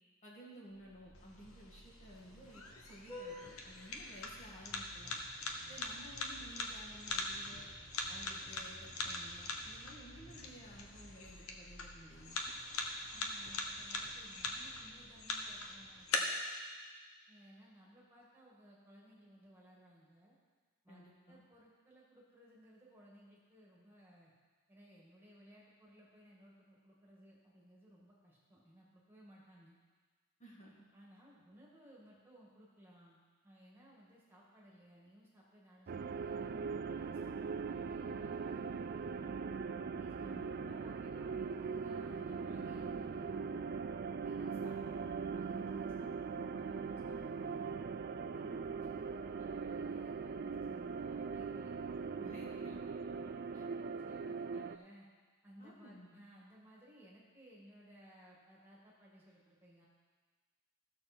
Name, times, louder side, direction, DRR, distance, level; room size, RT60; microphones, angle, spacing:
voice 1, 0.2-5.2 5.7-7.7 8.1-12.4 20.9-21.4 30.4-30.7 40.2-40.5 52.2-52.8 53.1-53.6 55.6-56.2, equal, 30° left, -4 dB, 1.7 m, -55 dB
Vehicle horn car horn honking, 0.7-16.1, left 1 dB, 10° left, 3.0 m, -57 dB
sound 1, 1.2-16.2, left 3 dB, 75° left, 1.1 m, -43 dB
voice 2, 13.1-16.3 17.3-20.4 20.8-24.3 24.7-29.8 30.9-39.4 40.0-43.6 44.2-47.8 48.3-51.7 53.9-55.1 55.4-59.9, equal, 10° right, -5 dB, 2.0 m, -60 dB
sound 2, 35.9-54.8, right 5 dB, 45° right, 0.3 m, -40 dB
14.5 x 6.8 x 4.4 m, 1.4 s
head